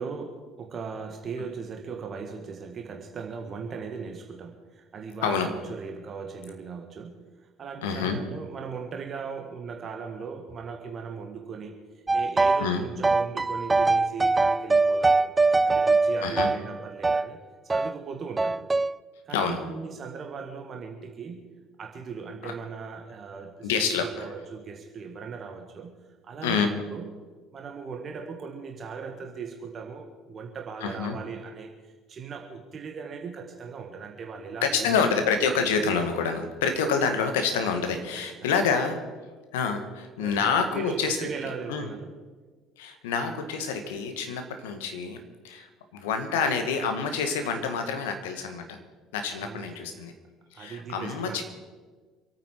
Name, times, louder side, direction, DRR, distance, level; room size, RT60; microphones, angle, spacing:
voice 1, 0.0-7.1 7.4-15.3 15.6-18.6 19.3-21.5 21.8-25.9 26.2-27.1 27.5-35.0 38.2-38.5 40.2-42.1 49.4-49.9 50.5-51.4, right 5 dB, 40° right, 3 dB, 1.7 m, -38 dB
voice 2, 7.8-8.2 12.6-12.8 16.2-16.5 19.3-19.6 22.4-22.5 23.6-24.1 26.4-26.7 30.8-31.2 34.6-39.0 39.5-41.3 41.7-41.9 42.8-48.8 49.1-50.1 50.5-51.4, left 5 dB, 70° left, 6 dB, 1.7 m, -27 dB
sound 1, 12.1-12.7 13.0-17.3 17.7-17.9 18.4-18.9, right 3 dB, 20° right, 0.4 m, -22 dB
26.5 x 9.2 x 4.8 m, 1.4 s
figure-of-eight pair, 60°, 0 cm